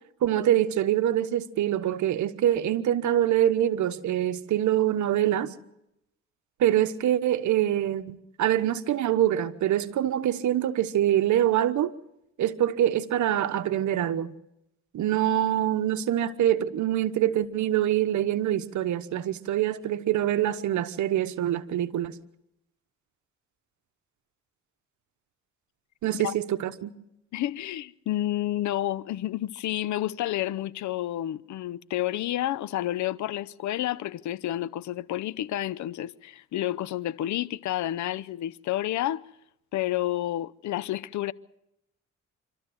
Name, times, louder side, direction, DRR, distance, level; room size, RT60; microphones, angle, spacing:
voice 1, 0.2-5.5 6.6-11.9 12.4-14.3 14.9-22.2 26.0-26.9, right 11 dB, 70° right, 1.2 m, -25 dB
voice 2, 27.3-39.2 39.7-41.3, left 13 dB, 70° left, 0.7 m, -30 dB
26.0 x 13.5 x 8.0 m
cardioid pair, 90°, 30 cm